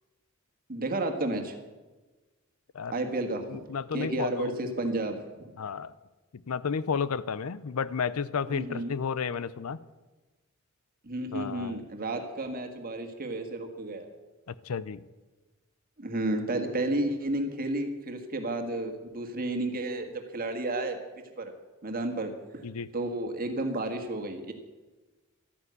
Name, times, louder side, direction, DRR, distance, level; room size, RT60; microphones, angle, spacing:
voice 1, 0.7-1.5 2.9-3.7 3.9-5.5 8.5-8.9 11.0-14.1 16.0-21.0 21.4-21.5 21.8-22.6 22.9-24.5, right 2 dB, 45° right, 5 dB, 1.7 m, -32 dB
voice 2, 3.4-4.8 5.6-5.9 6.5-9.8 11.3-11.8 14.5-15.0 22.6-22.9, left 6 dB, 90° left, 18 dB, 0.5 m, -32 dB
12.5 x 9.9 x 8.2 m, 1.2 s
head